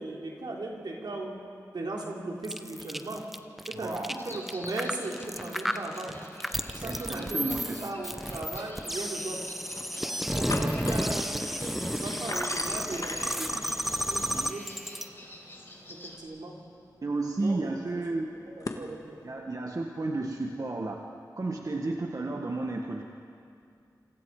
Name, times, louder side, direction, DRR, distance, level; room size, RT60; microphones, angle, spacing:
voice 1, 0.0-1.4 1.7-3.2 3.7-6.1 6.7-9.4 10.2-13.7 14.1-14.7 15.9-16.6 17.4-18.1 18.6-19.2, right 2 dB, 80° right, -1 dB, 3.6 m, -37 dB
sound 1, 2.4-15.1, equal, ahead, 1.1 m, -32 dB
voice 2, 3.8-4.1 6.8-7.9 14.2-14.5 17.0-18.3 19.2-21.0 21.4-23.0, right 2 dB, 55° right, 1 dB, 1.6 m, -32 dB
sound 2, 4.2-16.2, left 1 dB, 30° left, 5.5 m, -48 dB
sound 3, 8.8-8.9 9.5-9.9 10.2-18.9, left 2 dB, 55° left, 1.9 m, -42 dB
27.0 x 26.5 x 5.0 m, 2.4 s
cardioid pair, 55°, 7 cm